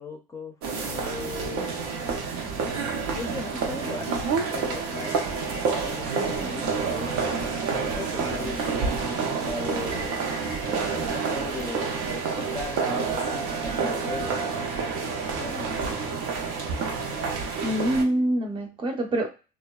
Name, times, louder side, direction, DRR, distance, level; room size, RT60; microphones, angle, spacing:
voice 1, 0.0-1.7 3.1-8.7 9.4-10.4 10.9-14.6 15.1-15.8, left 3 dB, 15° left, 1 dB, 0.5 m, -38 dB
sound 1, 0.6-18.0, right 5 dB, 85° right, 0.6 m, -28 dB
voice 2, 17.6-19.3, right 1 dB, 30° right, 3 dB, 0.6 m, -25 dB
2.5 x 2.1 x 2.3 m, 0.31 s
cardioid pair, 105°, 17 cm